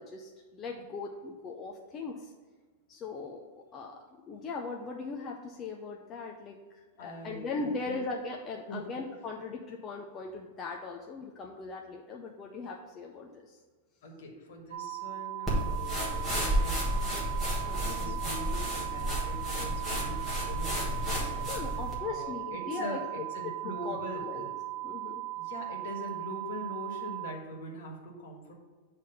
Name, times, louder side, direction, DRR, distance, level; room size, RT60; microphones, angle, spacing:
voice 1, 0.0-2.3 2.9-3.4 3.7-4.0 4.3-13.6 17.8-18.2 21.5-23.0 23.4-23.5 23.8-24.5 24.8-25.2, left 4 dB, 15° left, 0 dB, 0.4 m, -39 dB
voice 2, 7.0-8.0 8.7-9.0 14.0-21.5 22.0-24.5 25.4-28.5, equal, 55° left, 1 dB, 1.6 m, -43 dB
sound 1, 14.7-27.3, right 18 dB, 90° right, 0.6 m, -38 dB
sound 2, 15.5-22.0, equal, ahead, 1.4 m, -32 dB
8.5 x 3.3 x 5.6 m, 1.5 s
supercardioid pair, 180°, 0 cm